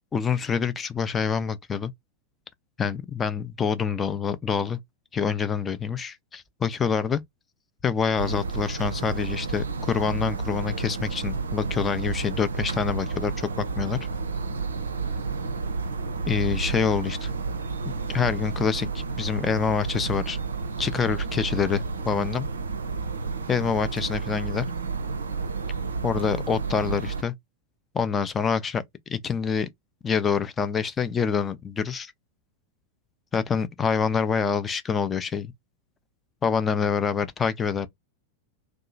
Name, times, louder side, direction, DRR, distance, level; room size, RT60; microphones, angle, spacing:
voice 1, 0.1-1.9 2.8-4.8 5.1-7.2 7.8-14.0 16.3-17.3 18.1-20.4 20.8-22.5 23.5-24.7 26.0-27.3 27.9-28.8 29.1-29.7 30.0-32.1 33.3-35.5 36.4-37.9, left 6 dB, 20° left, 0.4 m, -26 dB
sound 1, 8.1-27.2, right 4 dB, 70° right, 0.4 m, -31 dB
2.7 x 2.3 x 2.5 m
figure-of-eight pair, 90°, 0 cm